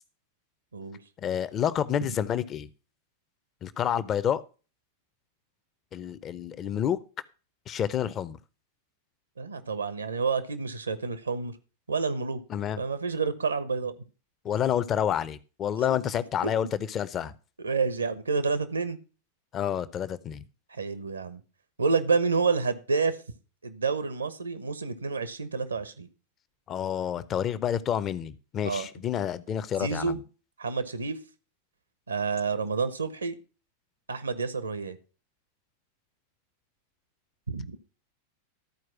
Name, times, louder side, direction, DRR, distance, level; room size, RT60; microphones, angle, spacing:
voice 1, 1.2-2.7 3.6-4.4 5.9-7.0 7.7-8.4 12.5-12.8 14.4-17.3 19.5-20.4 26.7-30.2, left 9 dB, 30° left, 16 dB, 0.7 m, -29 dB
voice 2, 9.4-11.5 11.9-12.4 12.8-13.9 17.6-19.0 20.8-21.4 21.8-23.2 23.6-26.1 28.6-28.9 29.8-30.2 30.6-31.2 32.1-33.3 34.1-35.0 37.5-37.8, right 4 dB, 75° right, 13 dB, 1.0 m, -29 dB
13.5 x 4.7 x 5.9 m, 0.35 s
figure-of-eight pair, 90°, 0 cm